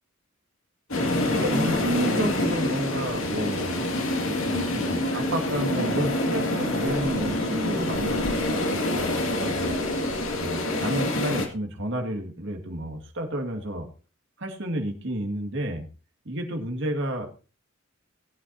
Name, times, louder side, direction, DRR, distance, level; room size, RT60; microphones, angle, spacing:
sound 1, 0.9-11.5, left 1 dB, 70° left, 2.2 m, -26 dB
voice 1, 1.3-3.8 4.2-9.8 10.4-13.9 14.4-15.9 16.3-17.3, right 1 dB, 60° right, 3 dB, 2.1 m, -31 dB
18.5 x 9.6 x 2.7 m, 0.34 s
head